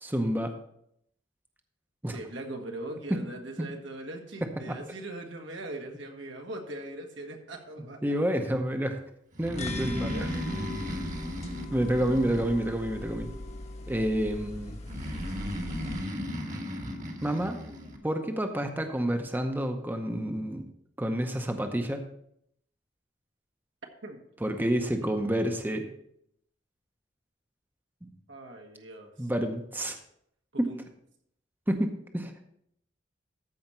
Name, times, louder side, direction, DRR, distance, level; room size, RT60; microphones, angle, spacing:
voice 1, 0.0-0.6 2.0-2.2 3.1-3.2 3.6-3.7 4.7-4.8 8.0-9.0 9.4-10.3 11.7-13.3 13.9-14.8 17.2-17.6 18.0-20.7 21.0-22.1 24.4-25.9 28.0-28.1 29.2-30.0 30.6-30.8 31.7-32.3, right 1 dB, 10° right, 5 dB, 0.8 m, -29 dB
voice 2, 2.1-8.0 9.9-10.7 12.0-12.1 24.0-24.2 25.0-25.1 28.3-29.3 30.5-30.8, right 1 dB, 80° right, 2 dB, 1.7 m, -41 dB
Breathing, 9.3-13.0 14.8-18.0, equal, 45° right, 1.5 m, -35 dB
sound 1, 9.5-16.0, left 2 dB, 40° left, 1.1 m, -40 dB
14.0 x 5.0 x 4.4 m, 0.72 s
head